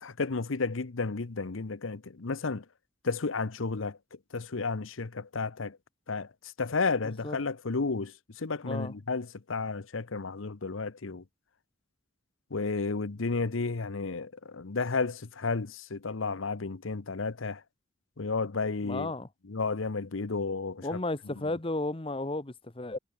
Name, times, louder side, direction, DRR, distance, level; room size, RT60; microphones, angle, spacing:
voice 1, 0.0-2.6 3.0-4.0 4.3-5.8 6.1-11.2 12.5-17.6 18.2-19.1 19.5-20.9, left 4 dB, 80° left, 0.9 m, -32 dB
voice 2, 7.0-7.4 8.6-8.9 18.8-19.3 20.8-23.0, left 2 dB, 25° left, 1.1 m, -33 dB
head